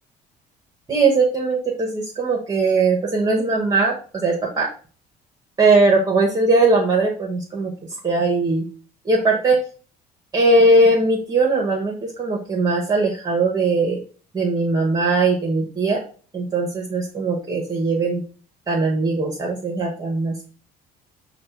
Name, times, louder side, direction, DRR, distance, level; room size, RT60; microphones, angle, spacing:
voice 1, 0.9-4.7 5.6-7.7 8.0-8.7 9.0-9.6 10.3-14.0 14.3-16.0 16.3-18.2 18.7-20.3, right 3 dB, 25° right, -1 dB, 1.0 m, -19 dB
5.2 x 2.3 x 4.5 m, 0.40 s
cardioid pair, 110°, 17 cm